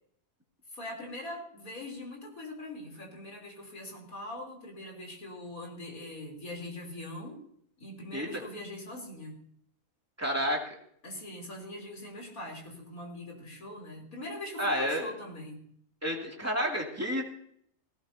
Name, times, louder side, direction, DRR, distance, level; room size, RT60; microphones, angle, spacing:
voice 1, 0.7-7.4 7.8-9.4 11.0-15.6, left 1 dB, 65° left, 0 dB, 4.1 m, -42 dB
voice 2, 10.2-10.7 14.6-15.1 16.0-17.2, equal, 10° right, -1 dB, 2.5 m, -30 dB
18.0 x 17.0 x 2.8 m, 0.66 s
omnidirectional pair, 1.6 m